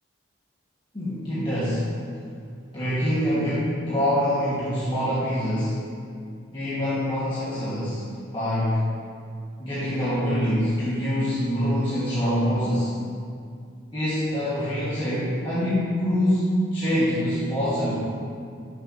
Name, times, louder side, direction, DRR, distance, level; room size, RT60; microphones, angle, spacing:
voice 1, 0.9-1.9 2.7-5.8 6.5-8.0 8.3-8.8 9.6-12.9 13.9-17.9, equal, 25° left, -12 dB, 1.5 m, -25 dB
10.0 x 6.6 x 2.7 m, 2.3 s
head